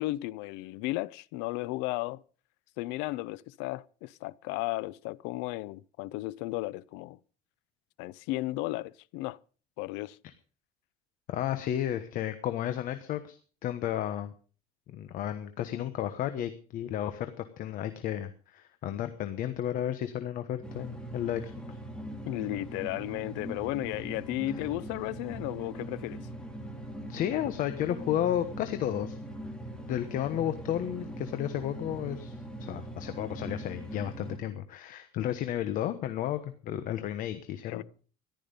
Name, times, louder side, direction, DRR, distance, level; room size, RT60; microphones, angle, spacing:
voice 1, 0.0-2.2 2.8-7.2 8.0-9.4 9.8-10.2 22.3-26.2 37.6-37.8, left 18 dB, 85° left, 0.6 m, -34 dB
voice 2, 11.3-14.3 14.9-21.8 27.1-29.2 29.9-37.8, left 11 dB, 50° left, 1.1 m, -33 dB
sound 1, 20.6-34.4, right 1 dB, 5° left, 2.0 m, -41 dB
14.5 x 12.0 x 5.3 m
cardioid pair, 160°, 18 cm